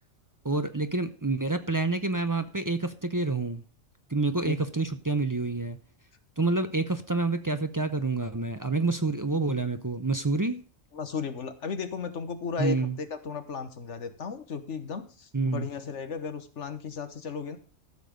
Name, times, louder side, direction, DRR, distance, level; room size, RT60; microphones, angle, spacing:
voice 1, 0.4-3.6 4.1-5.8 6.4-10.6 12.6-13.0 15.3-15.7, right 3 dB, 25° right, 0.5 m, -28 dB
voice 2, 10.9-17.6, left 6 dB, 70° left, 1.5 m, -35 dB
14.0 x 6.8 x 5.2 m
omnidirectional pair, 1.3 m